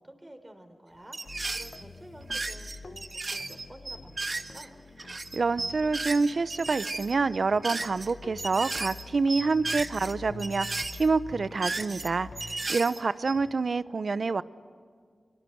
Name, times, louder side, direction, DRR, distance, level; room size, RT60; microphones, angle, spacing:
voice 1, 0.0-4.7, right 1 dB, 20° right, 7 dB, 3.8 m, -51 dB
sound 1, 1.1-1.8 2.1-4.7 5.0-8.1 8.4-9.0 9.3-10.1 10.4-12.1 12.3-13.5, right 3 dB, 45° right, 1.6 m, -35 dB
sound 2, 1.2-12.7, left 4 dB, 60° left, 1.0 m, -46 dB
voice 2, 5.3-10.7 10.9-14.4, right 4 dB, 65° right, 16 dB, 0.8 m, -27 dB
26.0 x 23.5 x 7.9 m, 2.1 s
wide cardioid pair, 75°, 0 cm